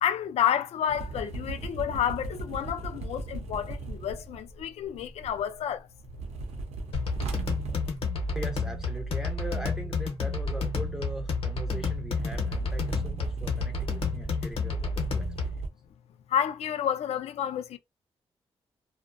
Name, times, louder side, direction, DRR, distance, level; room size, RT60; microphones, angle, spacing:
voice 1, 0.0-5.9 16.3-17.8, left 9 dB, 75° left, 0.4 m, -30 dB
sound 1, 0.9-5.6 5.9-15.7, right 2 dB, 85° right, 0.6 m, -39 dB
sound 2, 6.9-15.7, left 3 dB, 60° left, 0.7 m, -30 dB
voice 2, 8.4-15.5, equal, 5° right, 0.4 m, -40 dB
2.6 x 2.0 x 2.4 m
wide cardioid pair, 170°, 11 cm